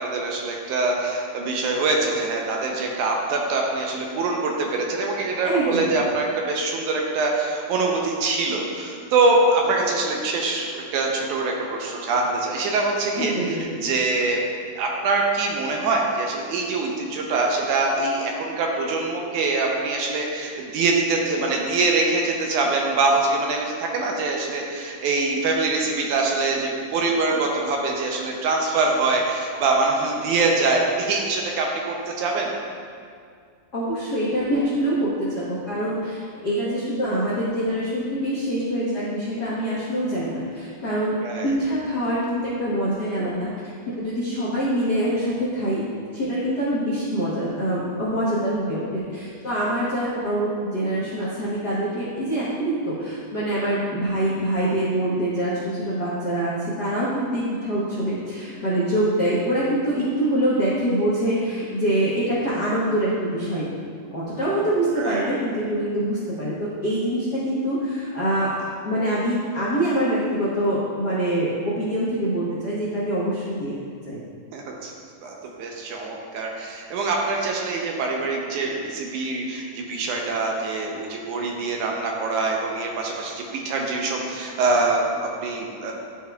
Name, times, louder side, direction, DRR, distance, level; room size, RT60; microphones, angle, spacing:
voice 1, 0.0-14.4 14.8-32.5 41.2-41.5 65.0-65.3 74.5-74.9 75.2-85.9, right 3 dB, 75° right, 0 dB, 2.0 m, -24 dB
voice 2, 5.4-6.0 13.2-13.6 33.7-43.5 43.9-45.8 46.1-63.7 64.1-68.5 68.8-73.7 74.1-74.2, right 1 dB, 85° left, -9 dB, 0.9 m, -25 dB
12.0 x 4.5 x 2.3 m, 2.2 s
omnidirectional pair, 3.7 m